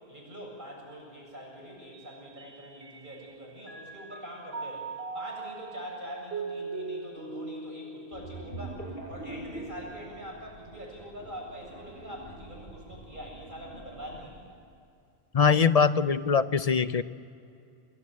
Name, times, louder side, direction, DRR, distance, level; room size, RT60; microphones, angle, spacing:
voice 1, 0.0-14.6, equal, 50° right, -1 dB, 7.7 m, -44 dB
Mallet percussion, 1.9-3.3 3.7-9.1, right 3 dB, 70° right, 1.4 m, -40 dB
sound 1, 8.1-14.2, right 1 dB, 60° left, 6.7 m, -44 dB
voice 2, 15.3-17.0, left 6 dB, 40° left, 13 dB, 0.7 m, -22 dB
29.0 x 20.5 x 7.6 m, 2.5 s
omnidirectional pair, 1.1 m